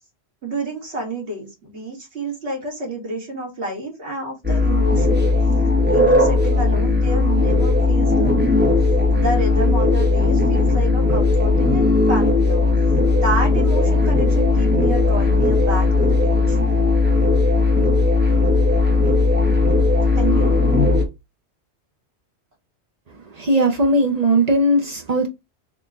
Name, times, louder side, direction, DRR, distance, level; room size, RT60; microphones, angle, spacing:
voice 1, 0.4-5.3 5.9-8.7 9.1-12.7 13.1-16.6 20.2-20.5, right 2 dB, 80° right, 1.9 m, -29 dB
sound 1, 4.4-21.0, left 3 dB, 10° right, 0.8 m, -17 dB
voice 2, 23.2-25.3, right 1 dB, 45° right, 0.7 m, -18 dB
3.9 x 2.2 x 3.5 m
omnidirectional pair, 1.1 m